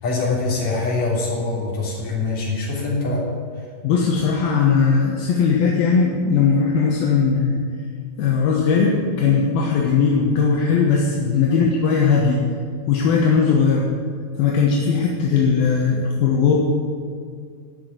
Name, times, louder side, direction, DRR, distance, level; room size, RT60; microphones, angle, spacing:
voice 1, 0.0-3.2, left 3 dB, 45° left, -4 dB, 4.4 m, -23 dB
voice 2, 3.8-7.6 8.2-12.4 12.9-13.9 14.4-16.5, left 5 dB, 75° left, -2 dB, 2.9 m, -18 dB
15.5 x 6.1 x 9.2 m, 2.1 s
omnidirectional pair, 4.6 m